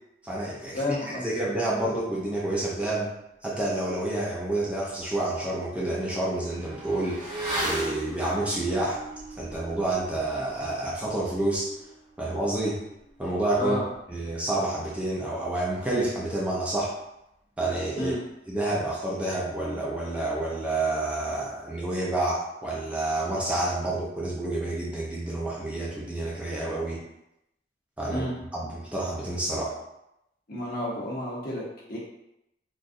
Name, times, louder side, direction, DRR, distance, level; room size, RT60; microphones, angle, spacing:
voice 1, 0.2-3.1 3.4-7.3 7.6-9.0 9.4-11.7 12.2-12.8 13.2-13.8 14.1-16.9 17.6-18.1 18.5-27.0 28.0-28.2 28.5-29.8, right 2 dB, 5° right, -5 dB, 0.5 m, -29 dB
voice 2, 0.7-1.2 13.6-13.8 18.0-18.2 28.1-28.3 30.5-32.0, left 1 dB, 55° left, -5 dB, 1.0 m, -31 dB
Motorcycle / Accelerating revving vroom, 4.4-4.5 4.8-14.9 15.1-15.2, right 1 dB, 25° right, 0.9 m, -39 dB
4.0 x 2.5 x 2.5 m, 0.83 s
head